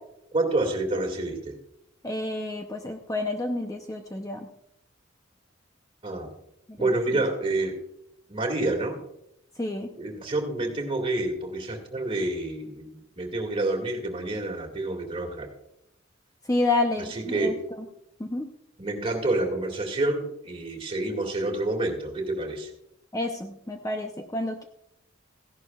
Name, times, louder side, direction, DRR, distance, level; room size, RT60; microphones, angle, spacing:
voice 1, 0.3-1.6 6.0-6.3 6.8-7.7 8.3-9.0 9.9-15.5 17.1-17.5 18.8-22.7, right 2 dB, 30° right, 1 dB, 2.2 m, -28 dB
voice 2, 2.0-4.5 6.7-7.2 9.6-9.9 16.5-17.5 18.2-18.5 23.1-24.6, left 2 dB, 15° left, 4 dB, 0.7 m, -29 dB
16.0 x 11.0 x 2.4 m, 0.78 s
head